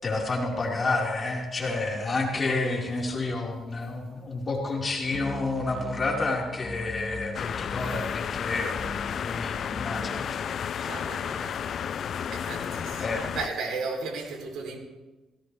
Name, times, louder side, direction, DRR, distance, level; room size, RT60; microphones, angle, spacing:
voice 1, 0.0-10.5 10.7-10.9 13.0-13.2, left 3 dB, 35° left, 4.7 m, -30 dB
sound 1, 5.1-10.4, left 3 dB, 10° left, 1.0 m, -40 dB
sound 2, 7.3-13.5, left 8 dB, 60° left, 0.4 m, -32 dB
voice 2, 10.7-11.7 12.3-14.8, right 4 dB, 75° right, 3.6 m, -35 dB
17.0 x 17.0 x 3.5 m
cardioid pair, 90°, 0 cm